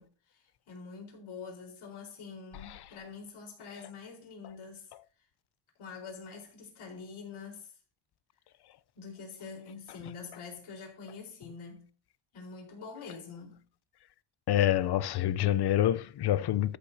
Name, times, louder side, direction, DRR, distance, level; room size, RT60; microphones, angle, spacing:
voice 1, 0.0-4.9 5.8-7.7 8.9-11.9 12.3-13.6, left 5 dB, 75° left, 4.5 m, -45 dB
voice 2, 14.5-16.8, left 12 dB, 55° left, 0.6 m, -26 dB
13.0 x 8.6 x 2.8 m
cardioid pair, 110°, 48 cm